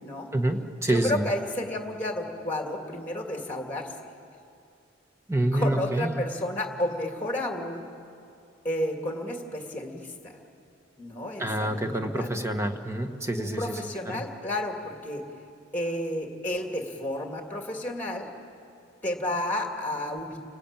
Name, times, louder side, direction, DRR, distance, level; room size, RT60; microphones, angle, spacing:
voice 1, 0.3-1.2 5.3-6.3 11.4-13.8 14.1-14.2, right 1 dB, 15° right, 6 dB, 1.4 m, -27 dB
voice 2, 0.9-3.9 5.5-7.9 8.6-10.3 11.0-12.3 13.4-15.2 15.7-18.3 19.0-20.4, left 1 dB, 10° left, 3 dB, 2.4 m, -31 dB
29.5 x 19.5 x 9.0 m, 2.5 s
head